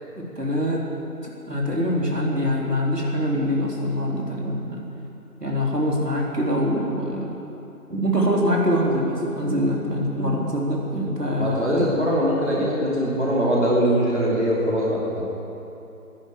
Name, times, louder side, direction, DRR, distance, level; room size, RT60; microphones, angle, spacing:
voice 1, 0.2-0.9 1.2-4.8 5.4-7.3 7.9-12.0 12.5-12.7, equal, 80° right, -3 dB, 3.6 m, -24 dB
voice 2, 11.4-15.3, equal, 45° right, -5 dB, 2.8 m, -22 dB
15.5 x 11.0 x 8.2 m, 2.9 s
figure-of-eight pair, 180°, 47 cm